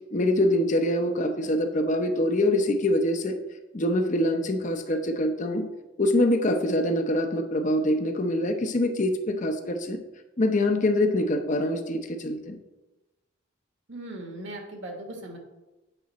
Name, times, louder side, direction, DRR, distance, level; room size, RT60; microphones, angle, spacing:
voice 1, 0.1-3.4 3.7-5.7 6.0-10.0 10.4-12.6, left 1 dB, 40° left, 7 dB, 0.7 m, -24 dB
voice 2, 13.9-15.4, right 1 dB, 60° right, 2 dB, 1.5 m, -38 dB
9.0 x 5.5 x 4.1 m, 1.0 s
head